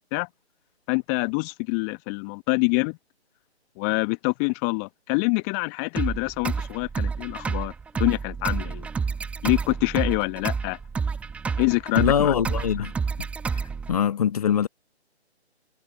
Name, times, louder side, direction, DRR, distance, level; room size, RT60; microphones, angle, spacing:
voice 1, 0.9-3.0 3.8-7.7 8.0-8.9 9.4-10.8 11.6-12.3, left 36 dB, 15° left, 1.3 m, -25 dB
sound 1, 6.0-14.0, right 5 dB, 5° right, 1.4 m, -29 dB
voice 2, 12.0-12.9 13.9-14.7, left 8 dB, 35° left, 1.2 m, -22 dB
figure-of-eight pair, 145°, 33 cm